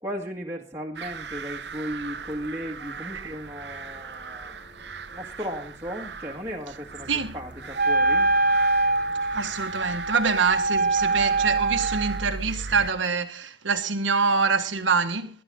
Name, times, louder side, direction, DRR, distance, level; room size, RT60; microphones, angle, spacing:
voice 1, 0.0-4.6 5.1-8.3, equal, 15° right, 1.7 m, -36 dB
sound 1, 0.9-12.9, right 4 dB, 60° right, 0.9 m, -38 dB
sound 2, 1.8-10.7, left 3 dB, 45° left, 7.9 m, -53 dB
Wind instrument woodwind instrument, 7.8-12.3, right 3 dB, 45° right, 1.4 m, -24 dB
voice 2, 9.3-15.3, right 5 dB, 80° right, 1.4 m, -25 dB
20.5 x 11.5 x 3.7 m
head